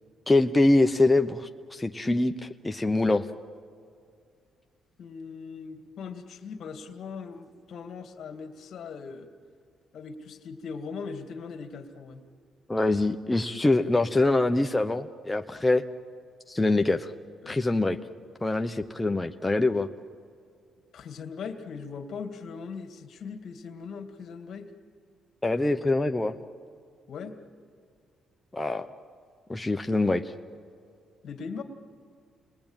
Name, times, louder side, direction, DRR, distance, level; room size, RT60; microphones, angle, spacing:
voice 1, 0.3-3.3 12.7-15.8 16.5-17.1 17.5-18.0 18.4-19.9 25.4-26.3 28.5-28.9 29.5-30.3, left 2 dB, 15° left, 5 dB, 0.8 m, -24 dB
voice 2, 5.0-9.3 9.9-12.2 17.4-17.8 20.9-24.7 27.1-27.4 31.2-31.6, left 5 dB, 65° left, 6 dB, 2.2 m, -40 dB
29.5 x 21.0 x 9.0 m, 2.2 s
cardioid pair, 90°, 0 cm